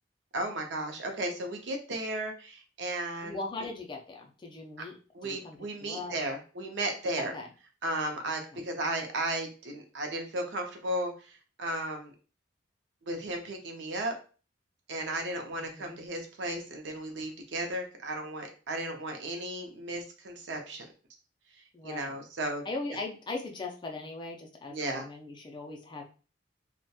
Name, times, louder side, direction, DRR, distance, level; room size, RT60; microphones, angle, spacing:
voice 1, 0.3-3.4 5.1-7.3 7.8-12.1 13.0-14.1 14.9-20.9 21.8-22.6 24.7-25.1, right 1 dB, 65° right, 4 dB, 0.5 m, -35 dB
voice 2, 3.2-5.0 5.2-6.2 7.2-7.5 8.5-8.6 15.5-16.0 21.7-22.1 22.7-26.0, left 3 dB, 25° left, 1 dB, 0.4 m, -39 dB
2.8 x 2.1 x 2.2 m, 0.36 s
head